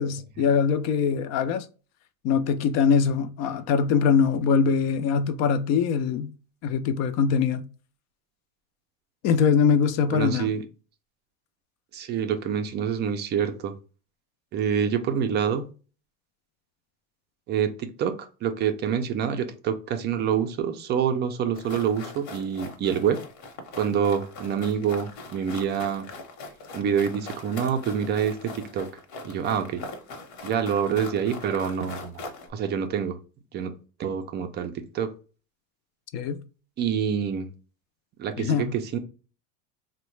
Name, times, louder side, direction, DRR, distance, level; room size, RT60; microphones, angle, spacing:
voice 1, 0.0-1.7 2.2-6.3 6.6-7.7 9.2-10.5 36.1-36.4 38.4-38.7, left 6 dB, 50° left, 0.4 m, -22 dB
voice 2, 10.1-10.6 11.9-13.7 14.5-15.7 17.5-23.2 23.7-26.1 26.7-28.9 29.2-29.8 30.4-32.2 32.5-33.2 33.5-33.7 34.0-35.1 36.8-37.5 38.2-39.0, right 8 dB, 30° right, 0.4 m, -26 dB
sound 1, 21.5-32.5, left 3 dB, 70° left, 1.0 m, -41 dB
3.5 x 2.2 x 3.1 m
cardioid pair, 145°, 36 cm